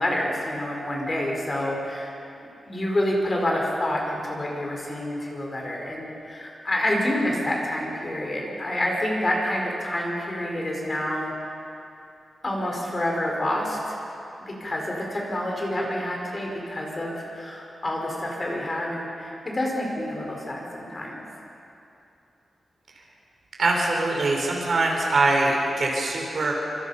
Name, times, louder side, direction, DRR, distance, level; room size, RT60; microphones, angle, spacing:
voice 1, 0.0-2.1 2.6-11.3 12.4-14.0 14.5-21.2, left 1 dB, 25° left, -1 dB, 4.7 m, -28 dB
voice 2, 23.6-26.5, right 2 dB, 50° right, -1 dB, 5.0 m, -23 dB
28.5 x 26.5 x 5.7 m, 2.7 s
wide cardioid pair, 175°, 0 cm